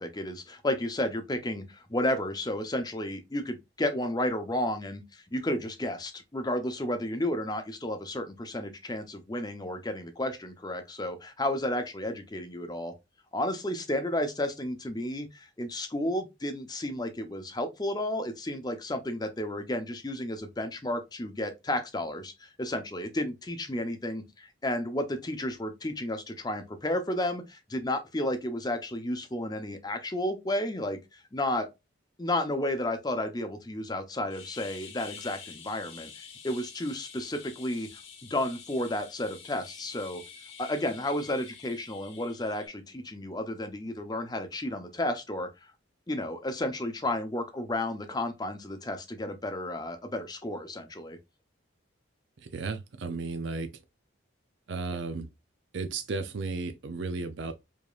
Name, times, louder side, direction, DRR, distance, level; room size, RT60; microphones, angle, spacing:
voice 1, 0.0-12.9 13.3-31.7 32.2-40.2 40.6-45.7 46.1-51.2, left 1 dB, 20° left, 0.7 m, -32 dB
sound 1, 34.3-42.7, left 7 dB, 80° left, 1.1 m, -48 dB
voice 2, 52.4-53.7 54.7-55.3 55.7-57.5, right 3 dB, 65° right, 0.5 m, -34 dB
5.0 x 2.8 x 2.3 m
head